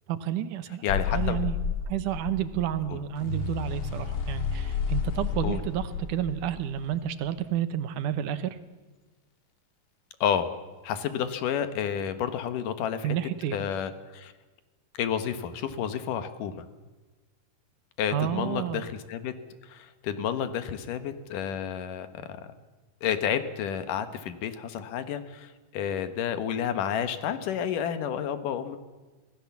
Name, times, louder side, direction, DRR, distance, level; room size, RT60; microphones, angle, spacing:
voice 1, 0.1-1.6 1.9-8.6 13.0-13.6 18.1-18.8, right 11 dB, 80° right, 11 dB, 2.5 m, -30 dB
voice 2, 0.8-1.4 2.9-3.0 5.4-5.6 10.2-10.5 10.8-13.2 13.5-14.3 15.0-16.6 18.0-19.3 19.7-22.4 23.0-28.8, left 8 dB, 80° left, 10 dB, 2.9 m, -30 dB
sound 1, 0.9-7.0, left 6 dB, 50° left, 1.8 m, -31 dB
25.5 x 17.0 x 7.2 m, 1.2 s
omnidirectional pair, 3.7 m